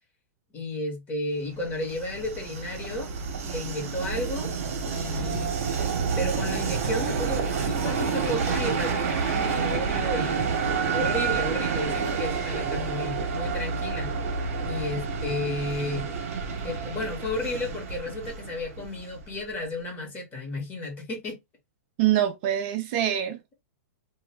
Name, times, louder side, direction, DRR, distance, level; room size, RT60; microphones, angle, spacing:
voice 1, 0.5-3.1 3.4-4.5 4.9-5.5 6.2-10.5 10.8-14.1 14.7-16.1 16.6-21.4, left 2 dB, 20° left, 1.1 m, -33 dB
Train, 1.6-19.4, right 5 dB, 60° right, 0.9 m, -29 dB
voice 2, 22.0-23.5, right 11 dB, 40° right, 0.4 m, -25 dB
2.3 x 2.1 x 3.4 m
hypercardioid pair, 145°, 8 cm